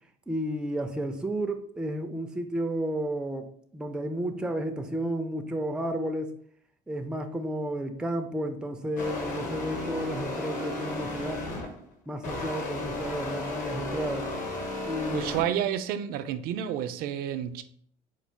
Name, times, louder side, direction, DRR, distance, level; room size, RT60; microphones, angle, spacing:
voice 1, 0.3-3.5 3.7-6.3 6.9-11.4 12.1-14.3 14.8-15.5, right 1 dB, 5° right, 0.4 m, -32 dB
sound 1, 9.0-11.8 12.2-15.4, left 2 dB, 55° left, 1.2 m, -34 dB
voice 2, 15.1-17.6, right 10 dB, 65° right, 0.5 m, -30 dB
4.5 x 2.3 x 4.4 m
cardioid pair, 110°, 16 cm